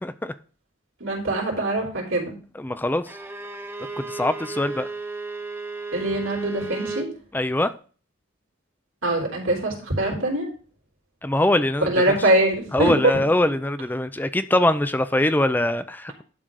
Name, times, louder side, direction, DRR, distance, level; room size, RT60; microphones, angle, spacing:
voice 1, 0.0-0.3 2.5-3.2 4.0-4.9 7.3-7.7 11.2-12.2 12.7-16.2, left 1 dB, 10° left, 11 dB, 0.5 m, -23 dB
voice 2, 1.0-2.4 5.9-7.1 9.0-10.5 11.8-13.1, right 1 dB, 90° right, -1 dB, 3.5 m, -23 dB
Bowed string instrument, 3.0-7.2, right 3 dB, 10° right, 0.9 m, -34 dB
11.5 x 3.9 x 6.2 m, 0.39 s
head